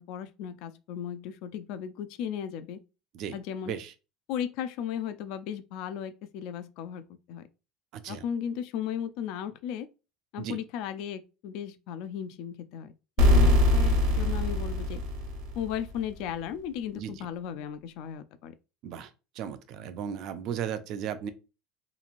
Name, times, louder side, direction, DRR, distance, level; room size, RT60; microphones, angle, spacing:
voice 1, 0.0-2.8 3.3-3.7 4.3-7.4 8.1-9.9 10.3-12.9 13.2-15.0 15.6-18.5, left 9 dB, 65° left, 0.3 m, -36 dB
voice 2, 7.9-8.2 10.4-10.6 13.3-13.6 16.9-17.3 18.8-19.1 19.4-21.3, right 8 dB, 55° right, 0.4 m, -35 dB
sound 1, 13.2-15.9, left 1 dB, 75° right, 1.0 m, -22 dB
3.0 x 2.5 x 2.4 m
cardioid pair, 140°, 0 cm